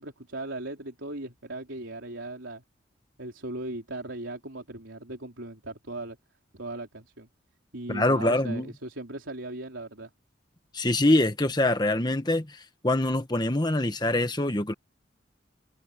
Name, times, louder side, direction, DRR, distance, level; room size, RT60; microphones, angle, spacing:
voice 1, 0.0-2.6 3.2-6.2 6.5-7.3 7.7-10.1, right 2 dB, 75° right, 3.7 m, -38 dB
voice 2, 7.9-8.7 10.7-12.6 12.8-14.7, left 1 dB, 20° left, 1.3 m, -24 dB
head